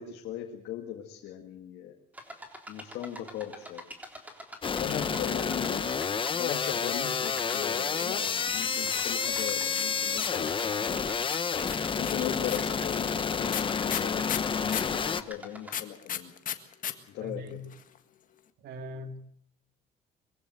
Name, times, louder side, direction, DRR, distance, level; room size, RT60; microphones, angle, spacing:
voice 1, 0.0-1.9 2.7-3.8 4.8-6.0 6.3-11.2 12.0-16.3 17.1-17.6, left 10 dB, 85° left, 1 dB, 2.1 m, -38 dB
sound 1, 2.1-15.8, equal, 10° right, 3.6 m, -46 dB
sound 2, 4.6-15.2, left 6 dB, 30° left, 1.0 m, -30 dB
sound 3, 6.6-8.3 8.9-10.5 11.3-15.0 15.7-16.9 17.2-17.3 17.5-18.0, left 10 dB, 50° left, 1.7 m, -35 dB
voice 2, 17.2-17.7 18.6-19.2, equal, 75° right, 8 dB, 2.3 m, -40 dB
22.5 x 15.0 x 7.9 m, 0.69 s
cardioid pair, 110°, 17 cm